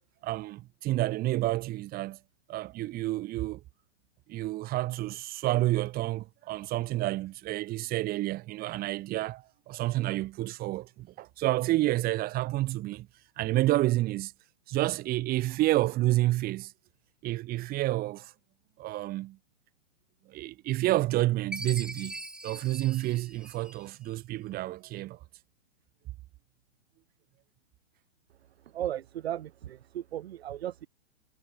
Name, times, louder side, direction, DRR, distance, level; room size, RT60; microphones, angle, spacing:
voice 1, 0.2-2.2 2.5-3.6 4.3-13.1 13.4-14.3 14.7-16.7 17.2-18.3 18.8-19.4 20.3-22.1 22.4-25.2, right 17 dB, 25° right, 6.8 m, -29 dB
Chime, 21.5-24.1, right 1 dB, ahead, 3.6 m, -41 dB
voice 2, 28.7-30.9, right 11 dB, 60° right, 4.2 m, -36 dB
hypercardioid pair, 150°, 36 cm